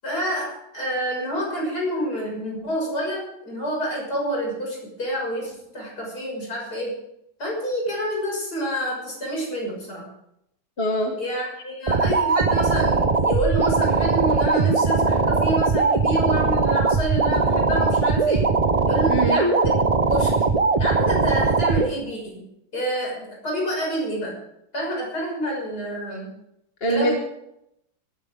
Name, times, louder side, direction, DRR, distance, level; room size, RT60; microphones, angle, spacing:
voice 1, 0.0-7.0 7.4-10.1 11.2-18.5 18.8-19.7 20.1-20.4 20.8-22.4 22.7-24.4 24.7-26.3 26.9-27.2, equal, 50° left, -1 dB, 6.8 m, -28 dB
voice 2, 10.8-11.2 19.1-19.4 26.8-27.1, right 1 dB, 35° left, 3 dB, 1.4 m, -22 dB
sound 1, 11.9-21.9, right 4 dB, 45° right, 0.4 m, -20 dB
20.5 x 13.0 x 3.8 m, 0.78 s
omnidirectional pair, 2.2 m